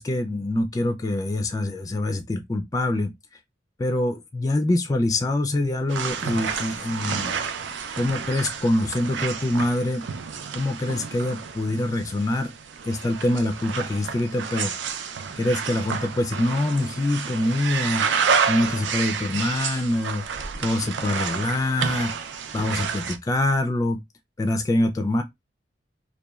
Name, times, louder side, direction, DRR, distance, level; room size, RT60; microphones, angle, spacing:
voice 1, 0.0-3.1 3.8-7.4 8.0-10.0 10.5-12.5 12.9-14.7 15.4-18.0 18.5-20.2 20.6-22.1 22.5-24.0 24.4-25.2, left 1 dB, 20° left, 0.3 m, -25 dB
sound 1, 5.9-23.2, right 6 dB, 85° right, 0.4 m, -30 dB
2.9 x 2.2 x 2.3 m
head